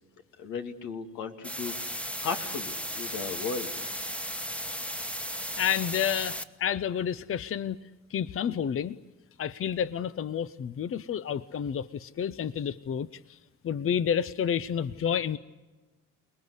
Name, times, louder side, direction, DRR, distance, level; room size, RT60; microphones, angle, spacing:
voice 1, 0.4-3.7, left 5 dB, 85° left, 4 dB, 2.7 m, -36 dB
sound 1, 1.4-6.4, equal, 5° left, 1.2 m, -35 dB
voice 2, 5.6-7.8 8.1-9.0 9.4-13.4 13.6-15.4, left 8 dB, 45° left, 14 dB, 0.7 m, -30 dB
29.0 x 20.0 x 8.1 m, 1.2 s
cardioid pair, 90°, 30 cm